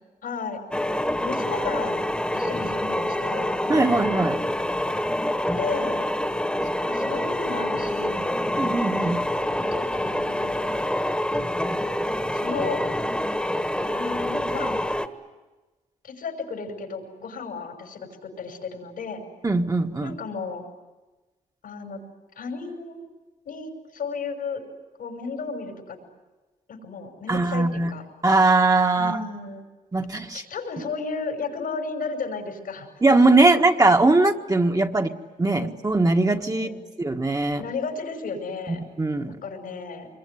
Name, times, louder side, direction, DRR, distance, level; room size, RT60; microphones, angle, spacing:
voice 1, 0.2-0.6 1.2-2.0 2.3-3.6 4.9-5.0 5.5-6.0 6.8-8.4 9.4-10.8 12.3-12.9 13.9-14.7 16.0-19.2 20.0-20.6 21.6-22.0 22.4-23.0 23.4-24.6 25.0-26.0 26.7-28.0 29.0-29.7 30.3-32.9 33.4-33.5 34.9-35.1 35.5-35.7 36.5-36.8 37.6-38.8 39.2-40.1, left 4 dB, 90° left, 3 dB, 5.9 m, -34 dB
sound 1, 0.7-15.1, left 1 dB, 5° left, 1.6 m, -26 dB
voice 2, 3.7-4.4 8.6-9.2 19.4-20.2 27.3-27.9 28.2-29.2 29.9-30.4 33.0-35.1 35.4-36.7 37.0-37.6 38.7-39.4, right 2 dB, 25° right, 3 dB, 1.7 m, -20 dB
26.0 x 22.5 x 9.8 m, 1.2 s
cardioid pair, 70°, 14 cm